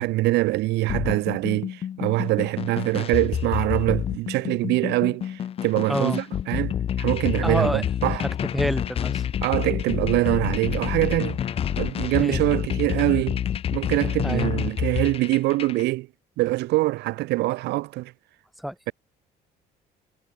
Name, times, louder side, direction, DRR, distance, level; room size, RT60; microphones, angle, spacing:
voice 1, 0.0-8.2 9.4-11.4 11.8-13.4 13.7-16.1 16.4-18.1, right 19 dB, 85° right, 1.2 m, -24 dB
sound 1, 0.9-15.8, left 9 dB, 35° left, 0.4 m, -28 dB
voice 2, 5.9-6.2 7.4-7.8 8.2-9.2 12.2-12.4 14.2-14.5 18.6-18.9, equal, ahead, 1.6 m, -27 dB
cardioid pair, 110°, 17 cm